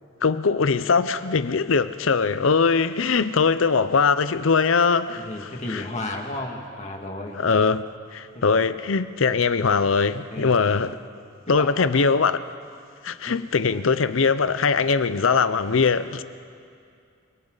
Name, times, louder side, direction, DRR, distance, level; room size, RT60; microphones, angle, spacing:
voice 1, 0.2-5.3 5.7-5.8 7.4-7.8 8.1-11.0 11.5-12.4 13.0-16.2, left 5 dB, 75° left, 0.6 m, -21 dB
voice 2, 5.1-7.4 8.3-8.7 10.3-10.5 11.5-11.9 13.2-13.4 13.7-13.8, left 2 dB, 35° left, 2.2 m, -33 dB
29.5 x 24.0 x 4.0 m
head